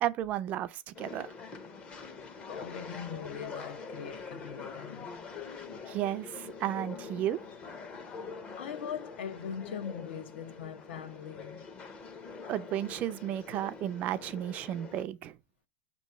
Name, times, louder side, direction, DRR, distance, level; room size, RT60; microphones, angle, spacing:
voice 1, 0.0-1.3 5.9-7.4 12.5-15.4, right 12 dB, 25° right, 0.4 m, -33 dB
sound 1, 0.9-15.0, left 5 dB, 20° left, 0.6 m, -44 dB
voice 2, 2.4-5.2 8.6-11.6, left 7 dB, 80° left, 0.9 m, -41 dB
6.0 x 3.0 x 5.5 m
supercardioid pair, 170°, 6 cm